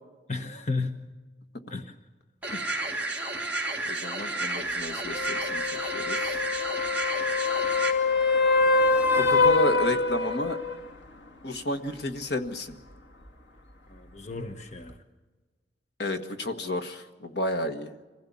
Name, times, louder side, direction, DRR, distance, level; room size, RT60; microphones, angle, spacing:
voice 1, 0.3-1.1 1.7-2.0 13.9-15.0, left 3 dB, 40° left, 6 dB, 1.2 m, -34 dB
sound 1, 2.4-7.9, right 2 dB, 10° right, 2.8 m, -31 dB
voice 2, 3.8-6.4 9.1-10.6 11.4-12.8 16.0-17.9, left 1 dB, 65° left, 6 dB, 1.5 m, -31 dB
sound 2, 5.1-10.8 14.9-15.0, left 3 dB, 85° left, 2.0 m, -24 dB
25.5 x 16.0 x 8.6 m, 1.3 s
head